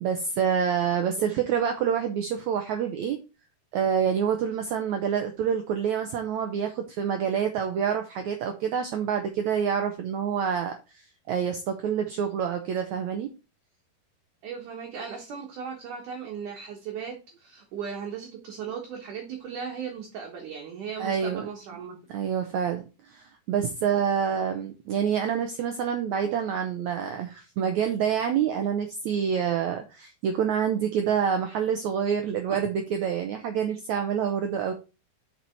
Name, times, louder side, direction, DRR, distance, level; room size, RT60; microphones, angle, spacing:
voice 1, 0.0-3.2 3.7-13.3 21.0-21.5 22.1-34.7, right 7 dB, 85° right, 5 dB, 1.6 m, -27 dB
voice 2, 14.4-22.0 29.7-29.8, right 7 dB, 65° right, 0 dB, 2.5 m, -37 dB
6.7 x 6.0 x 4.5 m, 0.30 s
omnidirectional pair, 4.5 m